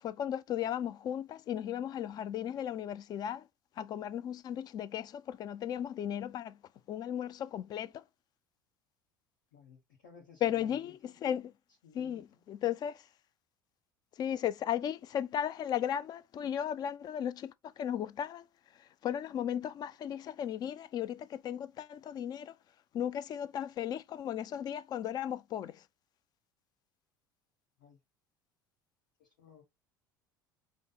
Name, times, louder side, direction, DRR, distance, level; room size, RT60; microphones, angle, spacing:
voice 1, 0.0-3.5 3.8-6.6 6.9-8.0 10.4-11.5 11.9-13.1 14.2-18.5 18.8-22.5 22.9-25.8, left 10 dB, 40° left, 0.4 m, -36 dB
voice 2, 9.5-11.1 11.8-12.4 27.8-28.0 29.2-29.6, left 6 dB, 65° left, 1.1 m, -57 dB
5.0 x 2.0 x 3.9 m
figure-of-eight pair, 65°, 11 cm